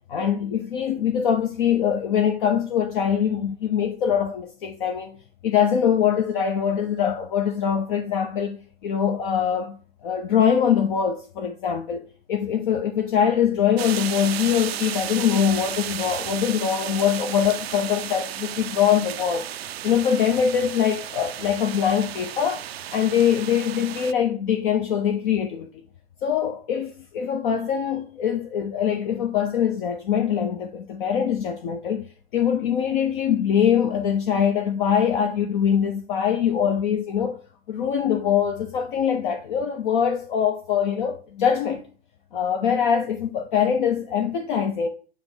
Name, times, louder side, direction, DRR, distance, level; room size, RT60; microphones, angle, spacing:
voice 1, 0.1-5.2 5.4-8.6 8.8-9.8 10.0-19.4 19.8-22.6 22.9-25.7 26.2-32.0 32.3-37.4 37.7-41.9 42.3-44.9, left 8 dB, 50° left, 0.9 m, -23 dB
sound 1, 13.8-24.1, right 12 dB, 70° right, 0.5 m, -33 dB
7.7 x 3.1 x 5.4 m
figure-of-eight pair, 105°, 32 cm